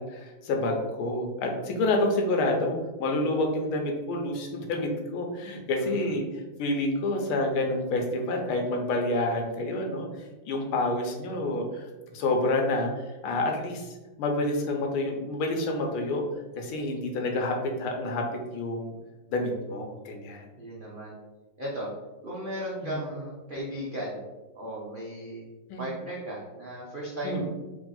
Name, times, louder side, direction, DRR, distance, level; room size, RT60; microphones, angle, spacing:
voice 1, 0.0-6.2 6.6-13.9 14.2-16.2 16.6-18.2 18.5-18.9 19.3-20.4 22.9-23.0 25.7-25.9 27.2-27.4, left 2 dB, 85° left, 2 dB, 1.6 m, -28 dB
voice 2, 5.7-6.1 20.6-21.1 21.6-21.9 22.2-24.2 24.5-25.4 25.8-27.4, equal, 75° right, -6 dB, 0.4 m, -36 dB
3.5 x 3.4 x 3.8 m, 1.1 s
omnidirectional pair, 2.3 m